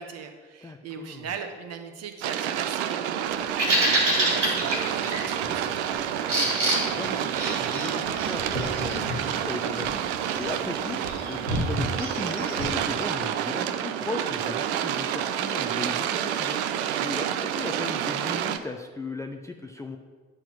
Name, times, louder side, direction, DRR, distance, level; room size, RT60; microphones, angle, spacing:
voice 1, 0.0-5.9, right 6 dB, 45° right, 5 dB, 1.2 m, -39 dB
voice 2, 0.6-1.3 7.0-10.0 10.4-11.0 11.3-16.6 17.0-20.0, left 3 dB, 10° left, 4 dB, 0.5 m, -37 dB
sound 1, 2.2-18.6, right 10 dB, 65° right, 0.6 m, -29 dB
Bird vocalization bird call bird song, 3.3-12.7, right 1 dB, 85° right, 1.5 m, -29 dB
9.4 x 4.3 x 5.9 m, 1.5 s
figure-of-eight pair, 55°, 36 cm